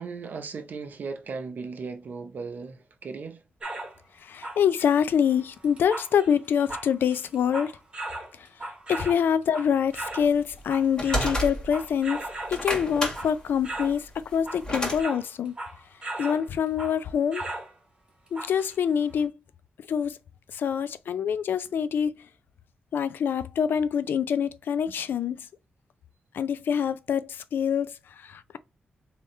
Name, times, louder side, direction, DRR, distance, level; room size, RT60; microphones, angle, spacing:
voice 1, 0.0-3.4, right 4 dB, 60° right, 0.8 m, -37 dB
sound 1, 3.6-4.0 4.3-10.3 10.6-12.6 13.1-13.4 13.6-14.0 14.3-16.5 16.8-17.0 17.3-17.7 18.3-18.7 19.2-19.3, right 2 dB, 30° right, 1.7 m, -37 dB
voice 2, 4.2-7.7 8.4-8.5 8.9-12.2 12.5-15.6 16.2-17.5 18.3-19.3 19.9-20.2 20.5-22.2 22.9-25.5 26.3-28.6, left 8 dB, 80° left, 0.4 m, -25 dB
sound 2, 10.2-11.9 12.3-15.0, equal, 25° left, 1.9 m, -30 dB
3.6 x 2.9 x 4.2 m
wide cardioid pair, 120°, 3 cm